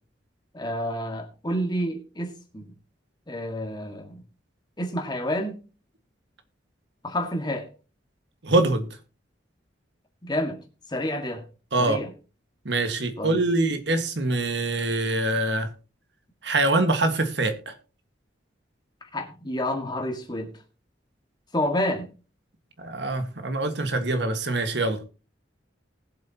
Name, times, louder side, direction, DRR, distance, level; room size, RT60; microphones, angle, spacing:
voice 1, 0.5-2.7 3.3-4.2 4.8-5.6 7.0-7.7 10.2-10.6 10.9-11.4 11.8-12.1 13.2-13.4 19.1-20.5 21.5-22.1, left 1 dB, 25° left, 1.8 m, -29 dB
voice 2, 8.4-8.9 11.7-12.0 12.6-15.7 16.4-17.7 22.8-25.0, right 2 dB, 65° right, 1.7 m, -24 dB
20.0 x 7.7 x 2.9 m
head